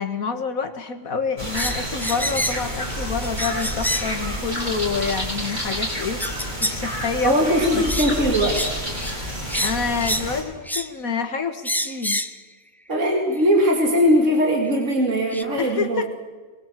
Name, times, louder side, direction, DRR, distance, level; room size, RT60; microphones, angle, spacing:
voice 1, 0.0-6.2 6.6-7.3 7.7-7.8 9.6-12.2 15.6-16.1, left 5 dB, 90° left, 8 dB, 2.1 m, -27 dB
sound 1, 1.4-10.4, equal, 35° right, 5.3 m, -29 dB
sound 2, 1.5-2.7 3.2-4.2 5.1-5.2 6.2-6.8 7.2-7.4 7.9-8.1 8.5-8.7 9.0-9.1 9.5-10.3 10.7-10.9 11.6-12.4 13.4-13.5 14.7-14.8 15.3-15.4, equal, ahead, 0.7 m, -27 dB
voice 2, 7.2-8.7 12.9-16.0, equal, 65° right, 1 dB, 2.9 m, -20 dB
24.0 x 20.5 x 7.5 m, 1.4 s
omnidirectional pair, 1.4 m